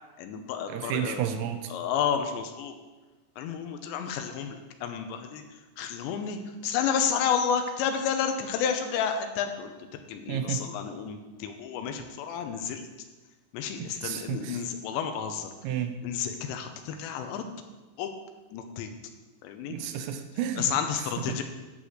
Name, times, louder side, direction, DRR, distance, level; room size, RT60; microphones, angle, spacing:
voice 1, 0.2-1.2 1.7-2.8 3.4-5.4 5.8-12.9 13.5-15.5 16.0-17.4 18.0-18.1 18.5-18.9 19.4-19.8 20.6-21.4, left 7 dB, 80° left, 6 dB, 2.9 m, -31 dB
voice 2, 0.7-1.7 10.3-10.7 13.8-14.7 15.6-16.0 19.7-20.7 21.2-21.4, right 9 dB, 90° right, 7 dB, 3.1 m, -32 dB
11.5 x 4.1 x 7.6 m, 1.2 s
omnidirectional pair, 5.2 m